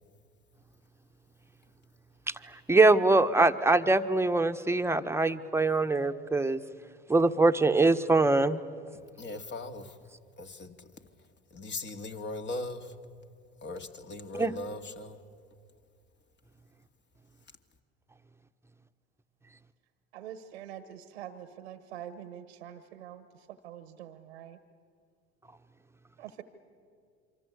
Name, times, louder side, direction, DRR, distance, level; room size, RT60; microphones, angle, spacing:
voice 1, 2.7-6.6 7.1-8.6 14.4-14.5, right 2 dB, 10° right, 8 dB, 1.3 m, -23 dB
voice 2, 9.2-10.0 10.4-10.9 11.5-12.9 13.6-15.2, left 2 dB, 35° left, 6 dB, 2.4 m, -39 dB
voice 3, 20.1-24.6 26.2-26.4, right 10 dB, 90° right, 10 dB, 1.4 m, -45 dB
27.5 x 24.5 x 8.3 m, 2.2 s
hypercardioid pair, 75°, 31 cm